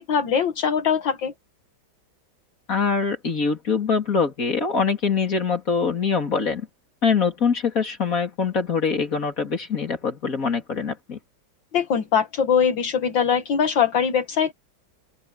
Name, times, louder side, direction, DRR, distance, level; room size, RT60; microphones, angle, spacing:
voice 1, 0.0-1.3 11.7-14.5, left 7 dB, 70° left, 2.1 m, -22 dB
voice 2, 2.7-6.7 7.0-11.2, left 5 dB, 45° left, 3.6 m, -23 dB
open air
omnidirectional pair, 2.1 m